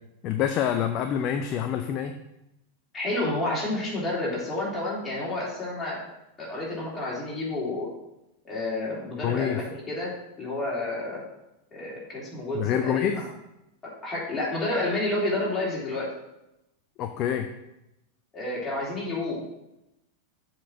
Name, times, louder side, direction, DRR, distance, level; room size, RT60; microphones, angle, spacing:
voice 1, 0.2-2.1 9.2-9.6 12.5-13.2 17.0-17.5, left 9 dB, 35° left, 7 dB, 0.5 m, -26 dB
voice 2, 2.9-6.0 6.4-7.9 8.4-11.2 11.7-13.2 13.8-16.1 18.3-19.4, left 2 dB, 15° left, -6 dB, 3.2 m, -30 dB
7.3 x 4.5 x 6.1 m, 0.90 s
figure-of-eight pair, 90°, 0 cm